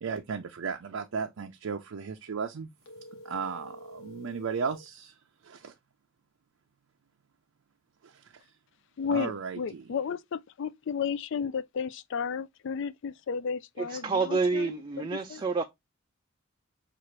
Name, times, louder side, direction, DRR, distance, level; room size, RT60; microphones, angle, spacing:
voice 1, 0.0-2.7 3.2-5.1 5.4-5.7 8.0-8.4 9.1-9.9, right 6 dB, 80° right, 0.5 m, -35 dB
sound 1, 2.8-4.9, equal, 80° left, 0.9 m, -47 dB
voice 2, 9.0-15.4, left 6 dB, 60° left, 0.4 m, -33 dB
voice 3, 13.8-15.6, right 4 dB, 20° right, 0.3 m, -28 dB
5.8 x 2.5 x 3.0 m
head